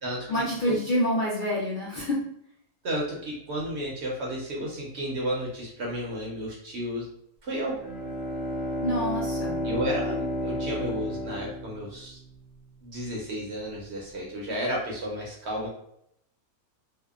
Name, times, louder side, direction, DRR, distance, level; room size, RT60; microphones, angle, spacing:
voice 1, 0.3-2.2 8.8-9.6, equal, 70° left, -7 dB, 0.4 m, -27 dB
voice 2, 2.8-7.1 7.4-7.8 9.6-12.2 12.8-15.7, equal, 60° right, -2 dB, 0.8 m, -32 dB
Bowed string instrument, 7.6-12.4, equal, 15° left, 1.0 m, -32 dB
2.7 x 2.1 x 2.3 m, 0.73 s
omnidirectional pair, 1.5 m